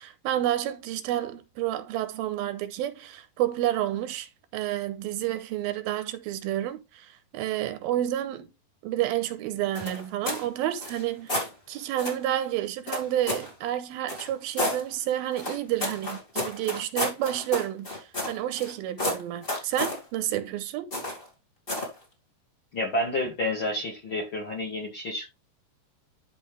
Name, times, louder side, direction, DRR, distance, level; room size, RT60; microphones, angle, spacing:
voice 1, 0.0-8.5 8.8-20.9, right 12 dB, 85° right, 2.7 m, -30 dB
sound 1, 9.7-10.5 10.8-11.5 12.0-12.2 12.9-13.5 14.1-14.8 15.4-18.7 19.0-20.0 20.9-21.3 21.7-22.0, left 1 dB, 20° left, 1.8 m, -31 dB
voice 2, 22.7-25.3, left 1 dB, 40° left, 2.4 m, -29 dB
12.5 x 4.1 x 3.3 m
omnidirectional pair, 4.2 m